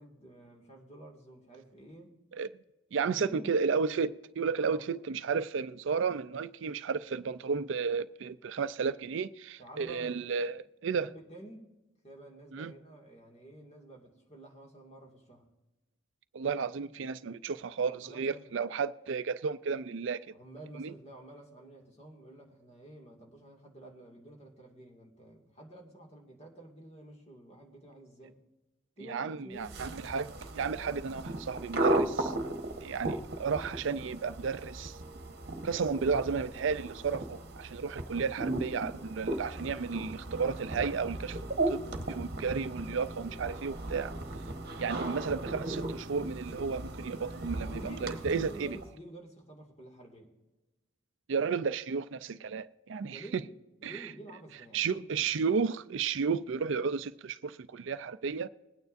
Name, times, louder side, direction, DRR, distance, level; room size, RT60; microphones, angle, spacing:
voice 1, 0.0-2.1 3.0-3.6 4.6-4.9 9.6-10.5 10.8-11.7 12.0-15.5 17.8-18.5 20.3-28.4 29.0-29.8 30.8-31.1 47.7-50.3 53.1-53.5 53.8-55.3, right 1 dB, 30° left, 2.2 m, -50 dB
voice 2, 2.9-11.1 12.5-12.7 16.3-20.3 20.8-20.9 29.1-32.3 32.8-35.0 35.6-41.4 41.7-41.8 42.1-44.1 44.8-48.8 51.3-53.4 53.8-54.1 54.7-58.5, right 5 dB, 70° right, 0.4 m, -33 dB
sound 1, 29.6-48.9, right 1 dB, 50° right, 1.1 m, -36 dB
21.0 x 9.4 x 2.6 m
head